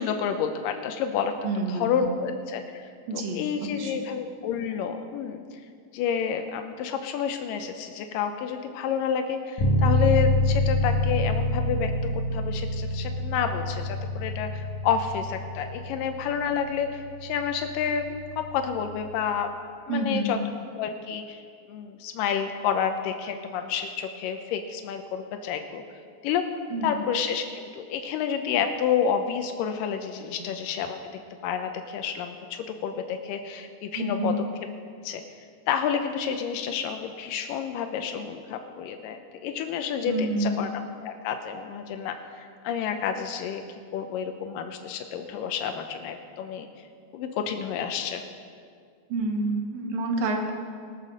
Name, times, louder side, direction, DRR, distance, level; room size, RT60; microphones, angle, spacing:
voice 1, 0.0-1.3 1.7-5.4 5.9-19.5 19.9-20.4 20.8-21.4 21.7-25.8 26.2-26.4 26.8-31.0 31.4-34.3 35.0-35.2 35.7-40.7 41.0-43.6 43.9-46.7 47.1-48.2, left 7 dB, 90° left, 6 dB, 2.3 m, -29 dB
voice 2, 1.4-2.2 3.1-4.0 19.9-20.5 26.7-27.0 30.3-30.5 34.0-34.4 40.0-40.6 49.1-50.5, right 2 dB, 90° right, 3 dB, 3.0 m, -29 dB
Bass guitar, 9.6-19.3, left 1 dB, 65° left, 2.7 m, -27 dB
19.5 x 6.7 x 6.3 m, 2.1 s
omnidirectional pair, 3.9 m